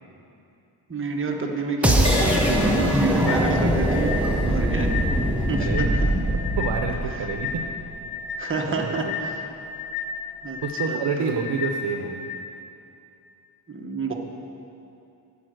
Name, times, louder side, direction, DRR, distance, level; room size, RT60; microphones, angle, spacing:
voice 1, 0.9-4.2 4.4-4.9 5.5-6.1 8.4-9.4 10.4-10.6 10.9-11.5 13.7-14.1, right 3 dB, 30° right, 1 dB, 1.0 m, -29 dB
sound 1, 1.8-7.8, equal, 5° right, 0.8 m, -22 dB
Crash cymbal, 2.0-9.7 10.4-10.7, equal, 15° left, 1.6 m, -35 dB
sound 2, 3.3-12.4, left 5 dB, 65° left, 0.8 m, -33 dB
voice 2, 4.3-4.8 5.2-5.3 5.6-5.9 6.6-7.7 8.7-8.9 10.6-12.3, right 5 dB, 70° right, 4 dB, 0.8 m, -29 dB
11.0 x 5.4 x 7.7 m, 2.7 s
wide cardioid pair, 160°, 43 cm